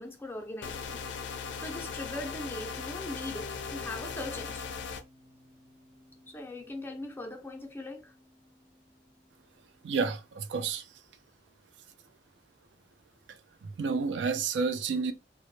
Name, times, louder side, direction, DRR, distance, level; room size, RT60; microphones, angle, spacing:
voice 1, 0.0-4.6 6.3-8.1, left 1 dB, 10° left, 0.4 m, -40 dB
sound 1, 0.6-5.0, left 5 dB, 80° left, 0.4 m, -38 dB
Harp, 3.3-9.4, left 2 dB, 50° right, 0.7 m, -54 dB
voice 2, 9.8-10.8 13.6-15.1, right 5 dB, 75° right, 0.4 m, -30 dB
2.0 x 2.0 x 3.1 m
head